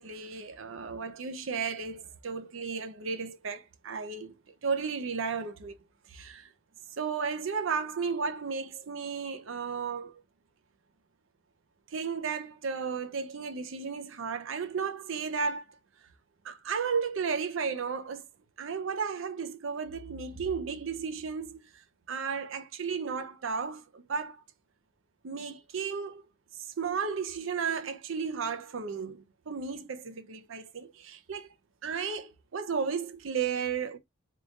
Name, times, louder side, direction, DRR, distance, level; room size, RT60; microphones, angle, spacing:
voice 1, 0.0-4.3 4.6-5.8 6.1-6.5 7.0-10.2 11.9-15.7 16.4-18.2 18.6-24.4 25.2-26.3 26.5-31.5 31.8-34.0, right 5 dB, 70° right, 0.6 m, -34 dB
3.7 x 2.4 x 3.6 m
head